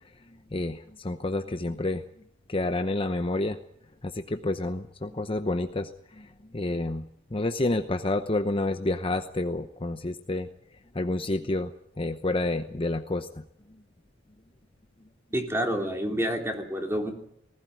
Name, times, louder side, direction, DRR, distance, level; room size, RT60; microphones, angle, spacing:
voice 1, 0.5-2.0 2.5-3.6 4.0-7.0 7.3-10.5 10.9-13.4, left 2 dB, 30° left, 8 dB, 0.8 m, -29 dB
voice 2, 15.3-17.1, equal, 15° right, 2 dB, 3.2 m, -28 dB
19.5 x 16.5 x 9.3 m, 0.72 s
head